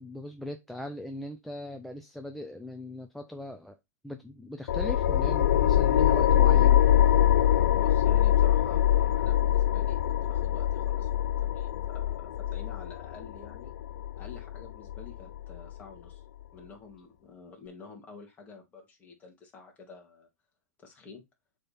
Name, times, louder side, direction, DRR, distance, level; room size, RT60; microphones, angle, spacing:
voice 1, 0.0-3.8 4.0-6.8, left 1 dB, ahead, 0.4 m, -39 dB
sound 1, 4.7-15.7, left 11 dB, 75° left, 0.4 m, -24 dB
voice 2, 7.7-13.7 14.2-16.2 16.5-20.3 20.8-21.2, left 4 dB, 20° left, 2.1 m, -49 dB
7.7 x 3.7 x 4.1 m
supercardioid pair, 155°, 9 cm